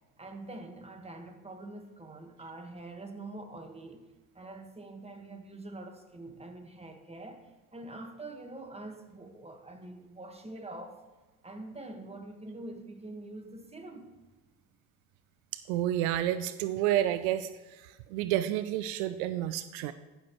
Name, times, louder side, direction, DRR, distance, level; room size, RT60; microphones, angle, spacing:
voice 1, 0.2-4.1 4.3-11.0 11.4-14.2, right 2 dB, 15° right, 4 dB, 1.6 m, -45 dB
voice 2, 15.7-17.5 18.1-19.9, right 12 dB, 80° right, 13 dB, 0.6 m, -29 dB
14.5 x 6.6 x 3.1 m, 1.2 s
hypercardioid pair, 70°, 41 cm